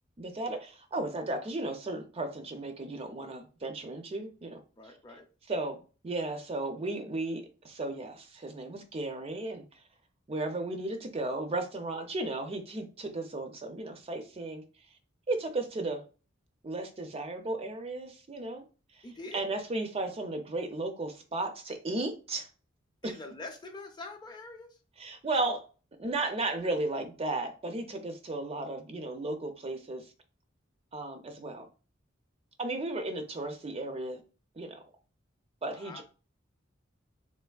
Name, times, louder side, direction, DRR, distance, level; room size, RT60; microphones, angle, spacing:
voice 1, 0.2-4.9 5.5-9.8 10.3-14.6 15.3-16.0 16.6-18.6 18.9-19.1 19.3-22.5 23.0-23.1 25.0-25.6 26.0-30.0 30.9-31.7 32.6-34.2 34.6-34.8 35.6-36.0, right 2 dB, 30° right, 0.4 m, -35 dB
voice 2, 4.8-5.2 19.0-19.4 23.0-24.8 35.7-36.0, left 2 dB, 20° left, 0.5 m, -44 dB
3.3 x 3.0 x 2.3 m
head